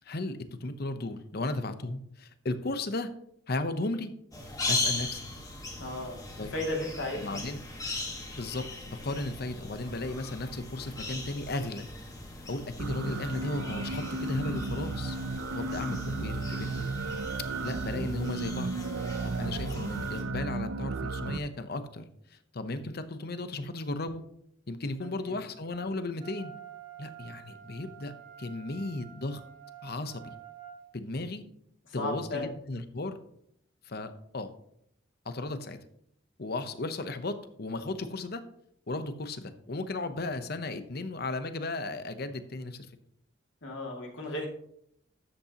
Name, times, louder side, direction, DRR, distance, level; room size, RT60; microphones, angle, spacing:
voice 1, 0.0-3.1 3.5-4.1 4.7-5.2 6.4-6.5 7.2-7.6 8.4-11.9 12.5-15.2 15.5-16.9 17.6-18.7 19.2-22.0 22.3-24.2 24.7-26.5 27.0-28.1 28.4-29.4 29.8-30.3 30.9-31.4 31.9-33.2 33.8-34.5 35.2-35.8 36.4-38.4 38.9-42.9, left 2 dB, 55° left, 10 dB, 0.9 m, -35 dB
sound 1, 4.3-20.2, left 2 dB, 20° left, 1.5 m, -39 dB
voice 2, 5.8-7.4 15.5-16.0 25.2-25.4 31.8-32.5 43.6-44.5, left 2 dB, 80° left, 0 dB, 2.4 m, -35 dB
sound 2, 12.8-21.4, right 3 dB, 90° right, 0.5 m, -34 dB
Wind instrument woodwind instrument, 26.2-30.8, right 10 dB, 45° right, 2.2 m, -48 dB
12.5 x 8.3 x 2.9 m, 0.69 s
head